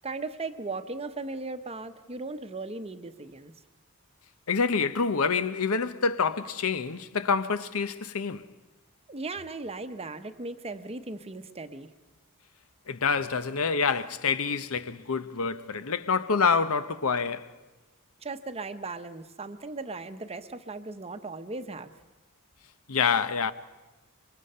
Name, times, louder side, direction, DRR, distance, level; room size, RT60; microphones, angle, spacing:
voice 1, 0.0-3.5 9.1-11.9 18.2-21.9, right 3 dB, 25° right, 0.9 m, -37 dB
voice 2, 4.5-8.4 12.9-17.5 22.9-23.5, left 5 dB, 70° left, 0.8 m, -27 dB
25.5 x 23.5 x 5.6 m
head